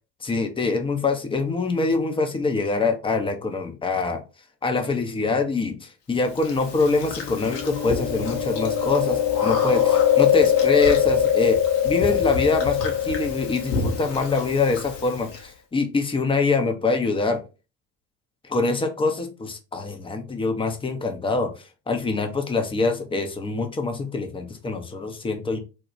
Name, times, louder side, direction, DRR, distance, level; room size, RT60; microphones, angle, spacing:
voice 1, 0.2-4.2 4.6-17.4 18.5-21.5 21.9-25.6, left 3 dB, 10° left, 5 dB, 0.4 m, -24 dB
Chewing mastication, 6.4-15.4, left 9 dB, 85° left, 0.7 m, -23 dB
3.0 x 2.1 x 2.4 m, 0.31 s
figure-of-eight pair, 60°, 48 cm